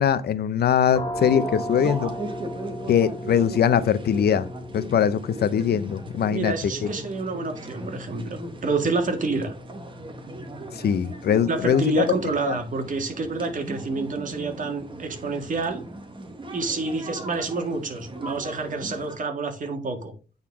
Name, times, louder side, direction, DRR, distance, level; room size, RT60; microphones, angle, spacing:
voice 1, 0.0-2.1 2.9-4.5 4.7-6.5 6.8-6.9 10.7-12.1 12.5-12.6, left 8 dB, 75° left, 0.7 m, -22 dB
sound 1, 0.9-12.4, left 1 dB, 25° left, 2.2 m, -38 dB
sound 2, 1.2-19.2, right 1 dB, 30° right, 1.3 m, -39 dB
voice 2, 6.3-9.5 11.5-15.9 16.5-20.2, right 3 dB, 50° right, 1.8 m, -28 dB
8.7 x 4.1 x 4.7 m
wide cardioid pair, 135°, 17 cm